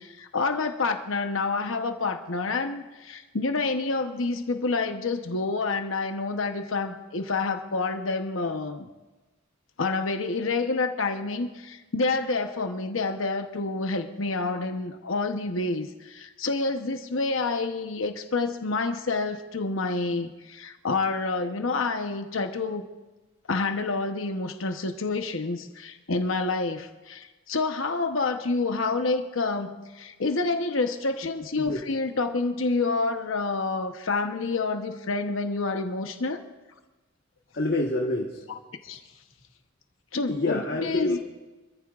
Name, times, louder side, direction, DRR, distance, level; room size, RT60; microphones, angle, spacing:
voice 1, 0.0-8.9 9.8-22.8 23.5-36.4 38.8-39.0 40.1-41.2, left 3 dB, 85° left, 6 dB, 1.0 m, -28 dB
voice 2, 31.2-31.8 37.5-38.4 40.3-41.2, left 2 dB, 55° left, 0 dB, 1.4 m, -27 dB
26.0 x 14.5 x 2.5 m, 1.2 s
head